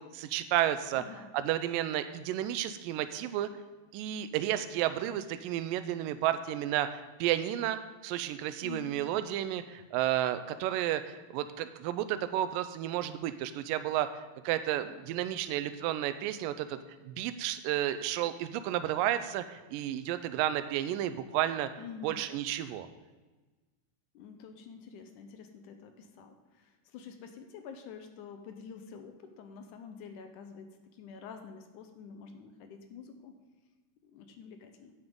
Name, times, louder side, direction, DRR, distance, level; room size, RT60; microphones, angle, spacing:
voice 1, 0.0-1.0 1.3-3.5 3.9-14.1 14.4-16.8 17.0-21.7 22.0-22.9, right 12 dB, 85° right, 11 dB, 2.2 m, -32 dB
voice 2, 0.9-1.3 8.6-9.0 21.8-22.3 24.1-33.4 34.0-34.9, left 6 dB, 75° left, 6 dB, 2.2 m, -48 dB
10.5 x 9.0 x 3.8 m, 1.2 s
omnidirectional pair, 3.9 m